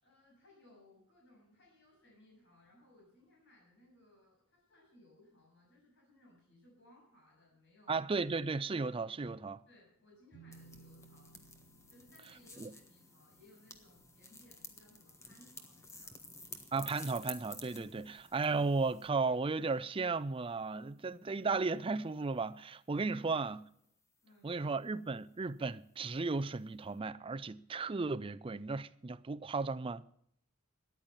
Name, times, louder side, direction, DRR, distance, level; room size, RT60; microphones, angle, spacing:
voice 1, 0.0-8.1 9.7-11.3 11.9-16.7 23.1-23.3 24.2-24.8, left 1 dB, 55° left, 7.5 m, -64 dB
voice 2, 7.9-9.6 12.6-12.7 16.7-23.6 24.4-30.0, right 4 dB, 25° right, 0.4 m, -35 dB
sound 1, 10.3-15.9, right 4 dB, 35° left, 7.2 m, -62 dB
sound 2, 10.5-19.1, left 3 dB, 15° left, 1.4 m, -52 dB
14.0 x 10.5 x 5.7 m
head